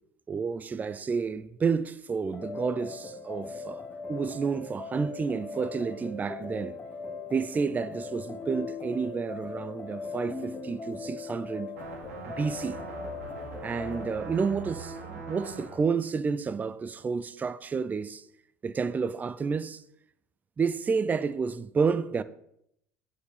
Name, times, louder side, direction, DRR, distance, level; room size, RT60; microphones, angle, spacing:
voice 1, 0.3-3.8 4.1-6.8 7.3-11.7 12.3-12.8 13.6-18.2 18.6-19.8 20.6-22.2, right 5 dB, 20° right, 0.4 m, -30 dB
sound 1, 2.3-14.2, left 4 dB, 25° left, 1.2 m, -40 dB
sound 2, 11.8-15.8, right 3 dB, 80° right, 1.8 m, -41 dB
6.6 x 4.7 x 6.4 m
hypercardioid pair, 75°, 8 cm